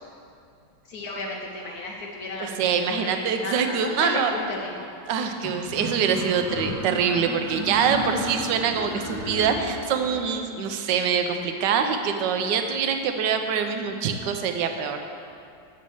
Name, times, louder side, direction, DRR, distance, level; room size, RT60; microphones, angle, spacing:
voice 1, 0.9-4.9, left 2 dB, 65° left, 0 dB, 1.0 m, -33 dB
voice 2, 2.4-4.4 5.1-15.0, right 6 dB, 70° right, 6 dB, 1.2 m, -24 dB
sound 1, 5.4-10.2, right 1 dB, 25° left, 0.4 m, -33 dB
6.7 x 5.2 x 7.0 m, 2.5 s
omnidirectional pair, 2.1 m